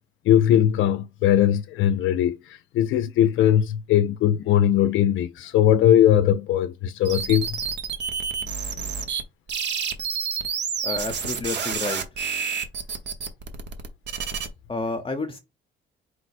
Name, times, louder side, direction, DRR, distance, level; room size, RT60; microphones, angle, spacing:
voice 1, 0.3-7.6, left 11 dB, 80° left, 0.4 m, -20 dB
sound 1, 7.0-9.2 9.5-14.5, right 6 dB, 60° right, 0.9 m, -29 dB
voice 2, 10.8-12.0 14.7-15.4, left 3 dB, 30° left, 0.7 m, -30 dB
4.7 x 2.0 x 4.2 m
cardioid pair, 90°, 20 cm